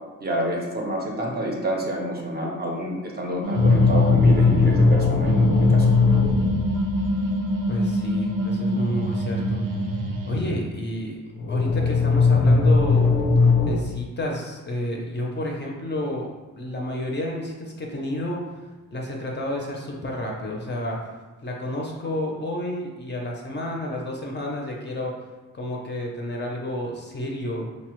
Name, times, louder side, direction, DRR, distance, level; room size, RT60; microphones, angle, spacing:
voice 1, 0.2-5.9, right 1 dB, 30° right, -1 dB, 0.4 m, -28 dB
sound 1, 3.4-10.4, equal, 80° right, 0.6 m, -26 dB
sound 2, 3.6-7.7 11.4-13.8, left 4 dB, 85° left, 0.5 m, -19 dB
voice 2, 7.7-9.6 10.3-11.2 11.5-13.2 13.7-18.6 18.9-21.1 21.4-25.1 25.5-27.7, left 1 dB, 35° left, -1 dB, 0.4 m, -30 dB
4.9 x 2.0 x 2.9 m, 1.2 s
wide cardioid pair, 175°, 33 cm